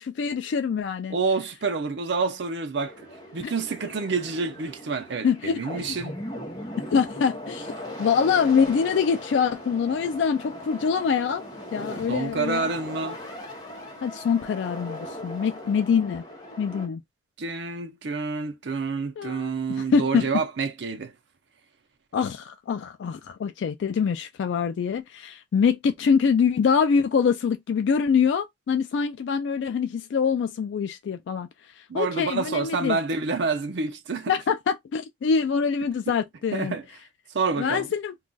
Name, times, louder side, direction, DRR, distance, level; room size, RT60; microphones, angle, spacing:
voice 1, 0.0-1.2 5.2-6.0 6.9-7.7 8.0-11.4 11.7-12.6 14.0-16.2 16.6-17.0 19.2-20.3 22.1-33.0 34.3-36.8 37.6-38.1, left 6 dB, 80° left, 0.3 m, -24 dB
voice 2, 1.1-3.1 3.3-6.2 12.1-13.2 17.4-21.1 31.9-34.3 36.1-36.2 36.5-36.9 37.3-37.9, right 4 dB, 75° right, 0.5 m, -28 dB
sound 1, 2.8-16.9, equal, 20° left, 0.7 m, -39 dB
2.3 x 2.3 x 3.8 m
head